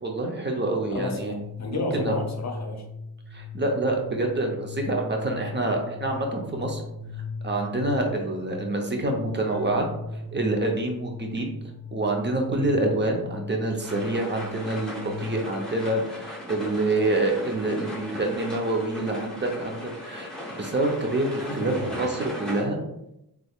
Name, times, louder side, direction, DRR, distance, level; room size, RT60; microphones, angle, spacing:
voice 1, 0.0-1.4 1.7-2.1 3.3-6.8 7.4-9.9 10.3-11.5 11.9-20.3 20.6-22.8, right 2 dB, 30° right, 2 dB, 0.6 m, -27 dB
voice 2, 0.9-2.8 12.7-12.9 21.5-22.1, left 2 dB, 45° left, 4 dB, 0.6 m, -32 dB
sound 1, 1.2-15.4, left 4 dB, 80° right, 1.3 m, -38 dB
sound 2, 13.8-22.6, left 1 dB, ahead, 0.9 m, -38 dB
3.4 x 3.1 x 2.3 m, 0.84 s
wide cardioid pair, 80°, 38 cm